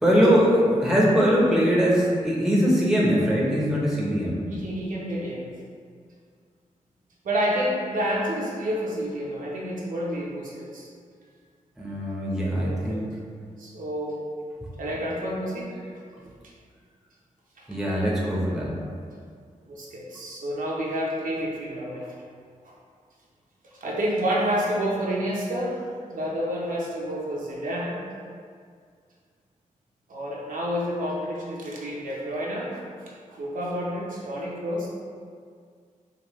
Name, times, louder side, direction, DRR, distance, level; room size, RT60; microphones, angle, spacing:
voice 1, 0.0-4.4 11.8-13.1 17.7-18.8, equal, 5° right, -5 dB, 0.8 m, -21 dB
voice 2, 4.5-5.5 7.2-10.9 12.6-13.1 13.6-14.2 14.8-15.7 17.6-17.7 19.7-22.1 23.8-25.8 26.1-28.0 30.1-32.8 33.3-34.9, equal, 80° right, -4 dB, 0.8 m, -29 dB
4.9 x 2.4 x 3.1 m, 2.1 s
wide cardioid pair, 100°, 14 cm